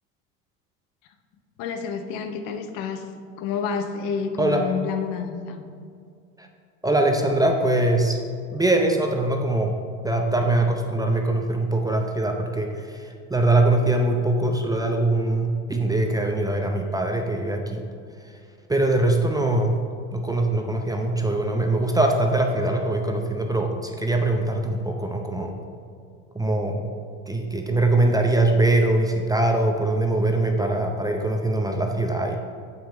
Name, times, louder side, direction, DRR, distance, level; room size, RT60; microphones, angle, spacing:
voice 1, 1.6-3.0 3.4-5.6, left 6 dB, 55° left, 7 dB, 0.9 m, -29 dB
voice 2, 4.4-4.7 6.4-6.5 6.8-8.2 8.5-9.7 10.0-17.8 18.7-19.8 20.1-25.5 26.3-26.8 27.3-32.4, right 2 dB, 10° right, 3 dB, 0.6 m, -22 dB
7.1 x 6.0 x 4.3 m, 2.3 s
hypercardioid pair, 85°, 41 cm